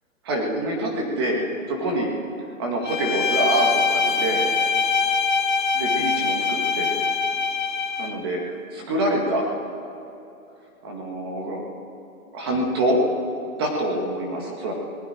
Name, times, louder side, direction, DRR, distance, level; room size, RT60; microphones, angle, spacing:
voice 1, 0.2-1.4 1.7-2.1 2.6-4.4 5.7-6.9 8.0-8.4 8.7-9.5 10.8-11.7 12.3-13.0 13.6-14.7, right 1 dB, 15° right, 0 dB, 2.0 m, -25 dB
Bowed string instrument, 2.9-8.2, left 5 dB, 35° left, 0.7 m, -23 dB
28.5 x 20.5 x 4.5 m, 2.8 s
hypercardioid pair, 180°, 43 cm